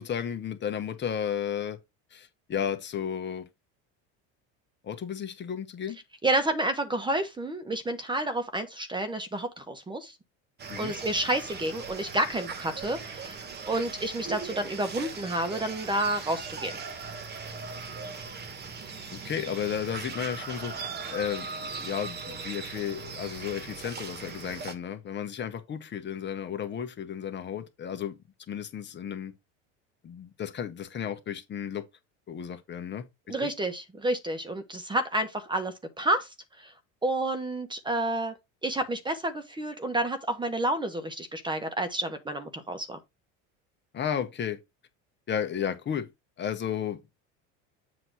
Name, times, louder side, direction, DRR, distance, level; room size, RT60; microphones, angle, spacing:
voice 1, 0.0-1.8 2.1-3.5 4.8-6.0 10.7-10.9 19.1-28.2 28.5-29.3 30.0-31.9 32.3-33.5 43.9-44.6 45.3-46.1 46.4-47.0, left 8 dB, 30° left, 1.3 m, -33 dB
voice 2, 6.2-10.1 10.8-13.4 13.7-16.7 33.3-36.7 37.0-38.3 38.6-43.0, right 1 dB, 15° right, 1.1 m, -30 dB
sound 1, 10.6-24.7, right 5 dB, 30° right, 1.4 m, -39 dB
7.7 x 2.9 x 6.2 m
supercardioid pair, 125°, 34 cm